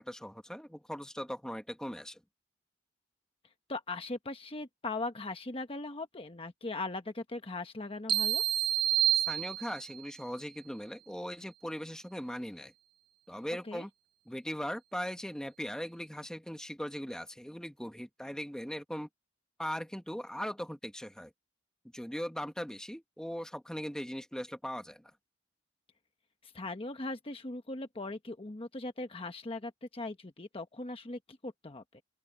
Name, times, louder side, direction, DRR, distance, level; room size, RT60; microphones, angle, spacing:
voice 1, 0.0-2.2 9.1-12.7 13.3-13.9 14.2-19.1 19.6-21.3 21.9-25.1, equal, 5° left, 1.6 m, -39 dB
voice 2, 3.7-8.4 13.6-13.8 26.4-32.0, left 2 dB, 30° left, 1.1 m, -39 dB
sound 1, 8.1-10.0, right 11 dB, 25° right, 0.6 m, -28 dB
open air
head